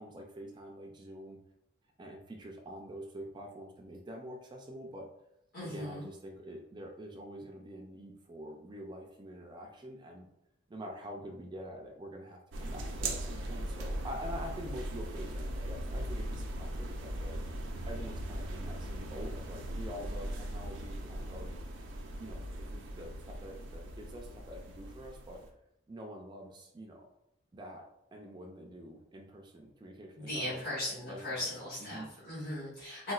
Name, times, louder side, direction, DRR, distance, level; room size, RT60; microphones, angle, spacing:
voice 1, 0.0-1.4 2.0-5.1 5.6-10.3 10.7-17.4 17.9-21.5 22.2-25.4 25.9-27.1 27.5-30.8 31.1-32.1, equal, 25° right, 1 dB, 0.4 m, -46 dB
voice 2, 5.5-6.1 30.1-33.1, left 1 dB, 55° left, -10 dB, 1.5 m, -38 dB
sound 1, 12.5-25.5, right 1 dB, 90° right, 0.5 m, -39 dB
4.0 x 2.2 x 2.3 m, 0.80 s
head